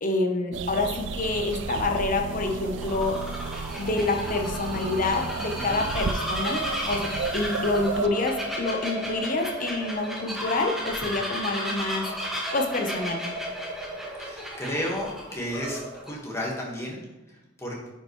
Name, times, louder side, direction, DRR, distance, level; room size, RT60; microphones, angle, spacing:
voice 1, 0.0-3.2 3.8-6.6 6.9-7.1 7.3-12.1 12.5-13.2, left 2 dB, 45° left, 3 dB, 1.0 m, -27 dB
sound 1, 0.5-8.1, right 4 dB, 65° right, 0.4 m, -33 dB
Bird vocalization bird call bird song, 1.1-16.1, equal, ahead, 1.4 m, -33 dB
voice 2, 14.2-15.8 16.1-17.9, equal, 15° left, -3 dB, 1.6 m, -33 dB
9.8 x 5.5 x 3.1 m, 1.1 s
head